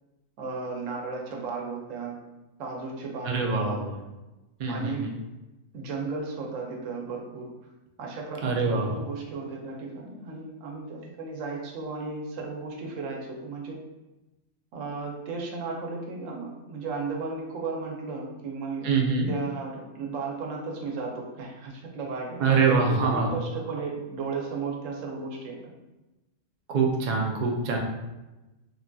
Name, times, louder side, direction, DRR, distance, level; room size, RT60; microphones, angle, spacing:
voice 1, 0.4-2.2 2.6-3.8 4.7-5.1 5.7-7.5 8.0-13.8 14.7-18.9 19.3-25.7, right 4 dB, 85° right, 0 dB, 1.0 m, -35 dB
voice 2, 3.2-3.9 4.6-5.1 8.4-8.9 18.8-19.3 22.4-23.3 26.7-27.8, right 4 dB, 65° right, 0 dB, 0.4 m, -24 dB
3.2 x 2.5 x 2.2 m, 1.0 s
omnidirectional pair, 1.3 m